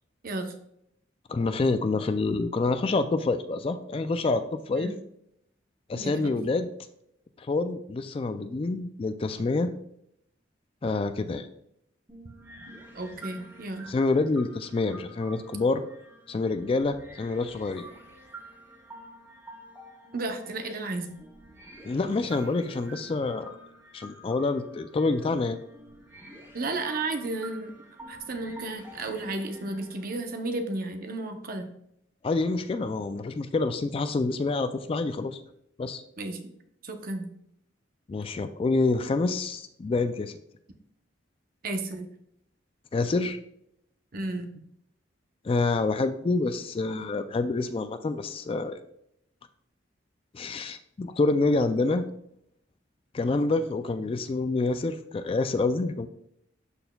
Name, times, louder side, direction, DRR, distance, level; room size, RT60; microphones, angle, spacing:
voice 1, 0.2-0.5 4.7-4.9 5.9-6.5 12.9-13.9 20.1-21.2 26.5-27.7 28.1-31.7 36.2-36.5 36.8-37.3 41.6-42.1 44.1-44.5, right 2 dB, 50° right, 5 dB, 0.7 m, -33 dB
voice 2, 1.3-4.9 5.9-6.7 7.4-9.7 10.8-11.5 13.9-15.8 16.3-17.8 21.8-23.5 23.9-25.6 32.2-35.4 35.8-36.0 38.1-40.3 42.9-43.4 45.4-48.8 50.3-52.0 53.1-56.1, left 3 dB, 30° left, 10 dB, 0.3 m, -27 dB
sound 1, 12.1-30.3, right 1 dB, 15° right, 1.8 m, -49 dB
12.0 x 4.3 x 2.2 m, 0.75 s
head